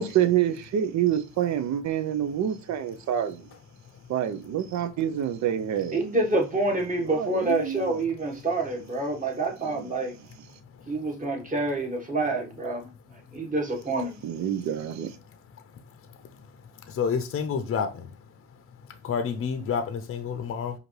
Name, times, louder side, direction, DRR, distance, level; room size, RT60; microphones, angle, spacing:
voice 1, 0.0-3.5 4.1-6.0 7.0-8.0 9.6-9.9 14.2-15.2, right 10 dB, 65° right, 0.6 m, -27 dB
voice 2, 5.9-10.1 10.9-12.9 13.3-14.2, right 2 dB, 25° right, 1.5 m, -27 dB
voice 3, 17.0-18.1 19.0-20.7, left 6 dB, 45° left, 0.6 m, -28 dB
4.9 x 2.6 x 3.1 m
cardioid pair, 90°, 30 cm